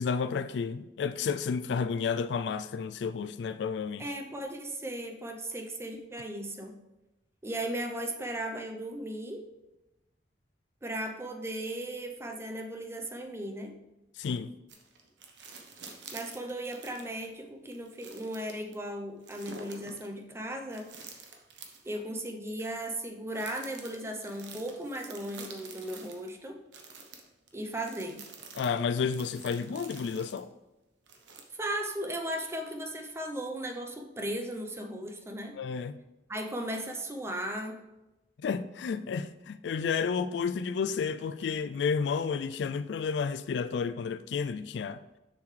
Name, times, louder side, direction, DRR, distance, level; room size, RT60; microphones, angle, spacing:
voice 1, 0.0-4.0 14.2-14.5 28.6-30.5 35.6-36.0 38.4-45.0, left 6 dB, 75° left, 0.3 m, -31 dB
voice 2, 4.0-6.7 7.4-9.4 10.8-13.7 16.1-20.9 21.8-26.6 27.5-28.3 31.5-35.5 36.3-37.8, right 1 dB, 15° right, 0.6 m, -36 dB
sound 1, 14.7-17.2 17.7-18.7 19.2-20.1 20.7-22.0 22.6-22.7 23.3-26.3 26.7-30.4 31.1-31.8 32.3-32.4, right 4 dB, 90° right, 1.0 m, -48 dB
6.9 x 6.5 x 3.3 m
head